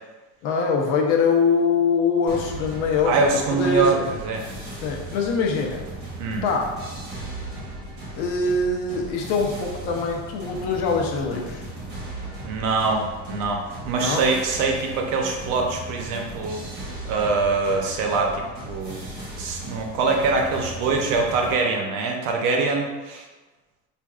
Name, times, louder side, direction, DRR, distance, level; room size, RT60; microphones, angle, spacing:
voice 1, 0.4-3.2 3.5-4.0 4.8-5.8 6.4-6.7 8.1-11.6 14.0-14.2, left 4 dB, 80° left, 1 dB, 0.8 m, -23 dB
sound 1, 2.3-21.6, right 1 dB, 30° right, 0.9 m, -37 dB
voice 2, 3.0-4.0 4.2-4.4 6.2-6.4 12.4-13.0 13.3-16.6 17.0-18.9 19.3-23.2, right 4 dB, 75° right, 1 dB, 0.8 m, -23 dB
5.0 x 2.6 x 2.4 m, 1.2 s
cardioid pair, 170°, 35 cm